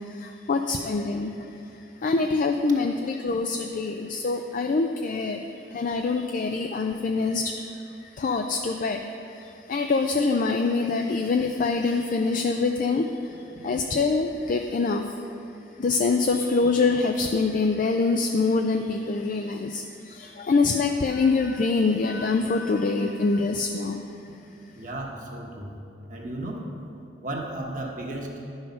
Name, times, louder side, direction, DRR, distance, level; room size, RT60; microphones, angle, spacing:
voice 1, 0.1-1.5 2.0-5.4 5.7-7.7 8.2-9.0 9.3-13.1 13.6-15.1 15.8-24.0, left 3 dB, 50° left, 5 dB, 0.4 m, -25 dB
voice 2, 24.7-25.8 26.1-26.7 27.2-28.4, right 1 dB, 45° right, 0 dB, 1.2 m, -34 dB
10.5 x 5.6 x 5.6 m, 2.7 s
head